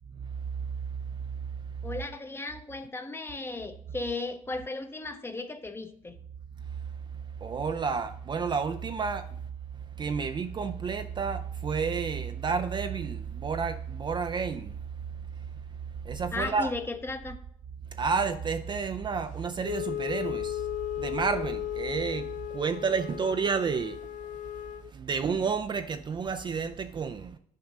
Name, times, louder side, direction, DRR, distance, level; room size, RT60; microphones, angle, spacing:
voice 1, 1.8-6.2 16.3-17.4, left 2 dB, 15° left, 0.7 m, -35 dB
voice 2, 7.4-9.3 10.0-14.8 16.0-16.7 18.0-20.7 21.0-24.0 24.9-27.4, right 5 dB, 30° right, 0.4 m, -30 dB
Wind instrument woodwind instrument, 19.6-24.9, left 13 dB, 60° left, 0.4 m, -35 dB
5.9 x 5.1 x 5.3 m
cardioid pair, 115°, 15 cm